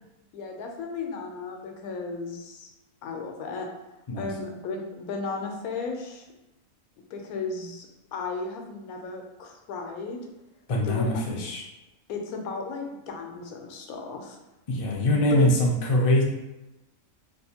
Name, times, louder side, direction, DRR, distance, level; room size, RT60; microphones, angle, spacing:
voice 1, 0.3-2.7 3.0-3.7 4.2-6.3 7.1-7.9 8.1-10.2 10.8-11.1 12.1-14.4 15.1-15.5, left 4 dB, 85° left, 2 dB, 1.1 m, -34 dB
voice 2, 10.7-11.6 14.7-16.2, left 1 dB, 55° left, -2 dB, 0.3 m, -23 dB
3.4 x 2.5 x 2.8 m, 0.96 s
omnidirectional pair, 1.5 m